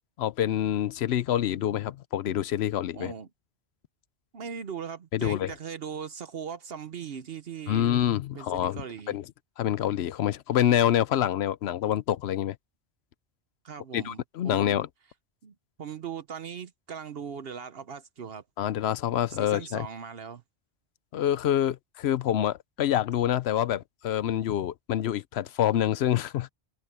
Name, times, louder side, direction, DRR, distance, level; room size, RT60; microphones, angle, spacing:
voice 1, 0.2-3.1 5.1-5.5 7.7-9.2 9.6-12.6 13.9-14.9 18.6-19.9 21.1-26.5, left 11 dB, 75° left, 0.9 m, -26 dB
voice 2, 2.9-3.3 4.3-7.9 8.3-9.2 13.6-14.8 15.4-18.4 19.3-20.4, right 7 dB, 65° right, 1.0 m, -39 dB
omnidirectional pair, 1.1 m